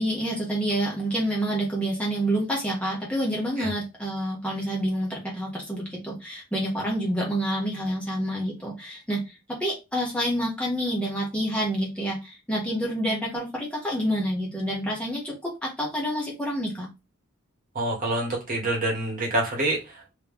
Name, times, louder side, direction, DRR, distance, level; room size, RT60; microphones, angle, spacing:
voice 1, 0.0-9.2 9.5-16.9, equal, 5° left, -4 dB, 1.2 m, -28 dB
voice 2, 17.7-20.0, right 1 dB, 45° right, -1 dB, 1.4 m, -27 dB
3.2 x 2.9 x 3.4 m, 0.24 s
head